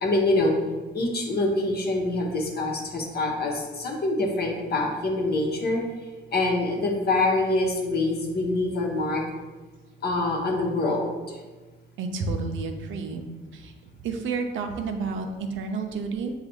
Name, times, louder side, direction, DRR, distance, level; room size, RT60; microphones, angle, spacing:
voice 1, 0.0-0.5 0.9-5.8 6.3-9.2 10.0-11.4, left 2 dB, 55° left, 0 dB, 0.9 m, -25 dB
voice 2, 12.0-13.3 13.5-13.7 14.0-16.3, right 4 dB, 75° right, 4 dB, 0.6 m, -30 dB
6.6 x 2.4 x 2.9 m, 1.3 s
cardioid pair, 90°, 20 cm